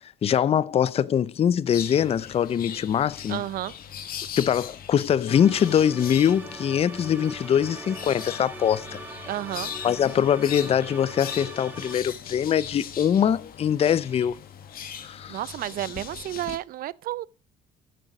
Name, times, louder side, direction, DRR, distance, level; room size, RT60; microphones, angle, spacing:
voice 1, 0.2-3.4 4.4-9.0 9.8-14.4 15.0-15.4, left 9 dB, 35° left, 0.5 m, -23 dB
sound 1, 1.7-16.6, left 8 dB, 60° left, 1.6 m, -40 dB
voice 2, 3.3-3.7 9.2-9.7 15.3-17.3, right 14 dB, 60° right, 0.5 m, -31 dB
sound 2, 5.3-12.0, right 1 dB, 10° right, 2.9 m, -41 dB
9.1 x 6.4 x 6.0 m
cardioid pair, 110°, 17 cm